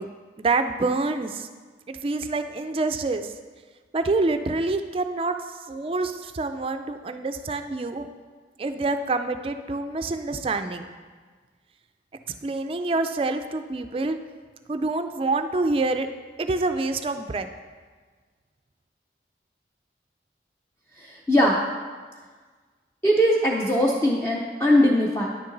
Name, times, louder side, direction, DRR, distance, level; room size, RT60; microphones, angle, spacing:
voice 1, 0.0-1.5 1.9-3.3 3.9-5.3 5.7-8.1 8.6-10.9 12.4-14.2 14.7-16.1 16.4-17.5, right 3 dB, 30° right, 8 dB, 0.3 m, -26 dB
voice 2, 21.0-21.6 23.0-25.3, equal, 15° left, -3 dB, 0.6 m, -20 dB
9.7 x 6.7 x 3.9 m, 1.5 s
head